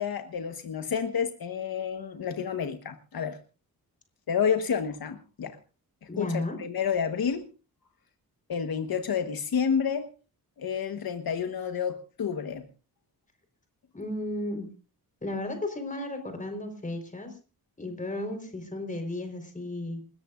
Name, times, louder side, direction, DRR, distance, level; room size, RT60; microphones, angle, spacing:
voice 1, 0.0-3.4 4.3-5.6 6.2-7.5 8.5-10.1 10.6-12.7, left 7 dB, 70° left, 7 dB, 1.4 m, -29 dB
voice 2, 6.1-6.6 13.9-14.7 15.2-17.4 17.8-20.0, left 1 dB, 20° left, 5 dB, 4.4 m, -34 dB
28.5 x 14.0 x 2.5 m, 0.34 s
wide cardioid pair, 165°, 38 cm